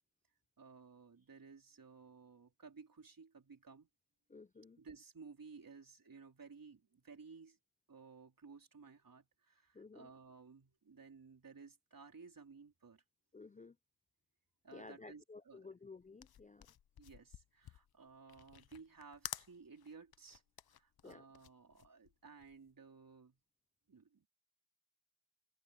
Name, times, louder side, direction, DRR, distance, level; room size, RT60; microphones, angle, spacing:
voice 1, 0.6-3.9 4.8-7.6 7.9-13.0 14.6-15.7 17.0-20.4 20.7-23.4 23.9-24.3, right 5 dB, 60° right, 4.1 m, -57 dB
voice 2, 4.3-4.8 9.7-10.1 13.3-13.8 14.7-16.7 21.0-21.2, left 3 dB, 20° left, 0.4 m, -54 dB
sound 1, 16.0-22.7, left 10 dB, 75° left, 0.6 m, -52 dB
wide cardioid pair, 90°, 37 cm